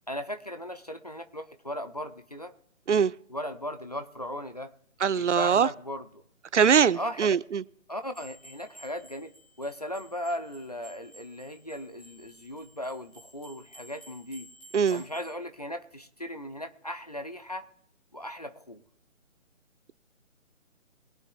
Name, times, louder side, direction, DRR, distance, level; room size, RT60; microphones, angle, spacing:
voice 1, 0.1-2.5 3.3-4.7 5.1-6.2 6.9-7.3 7.9-9.3 9.6-14.5 14.9-17.7 18.1-18.8, equal, 30° left, 0.5 m, -37 dB
voice 2, 5.0-5.7 6.5-7.6 14.7-15.0, right 7 dB, 65° right, 0.5 m, -22 dB
sound 1, 8.1-15.3, equal, ahead, 1.2 m, -54 dB
22.0 x 9.6 x 2.3 m
figure-of-eight pair, 150°, 39 cm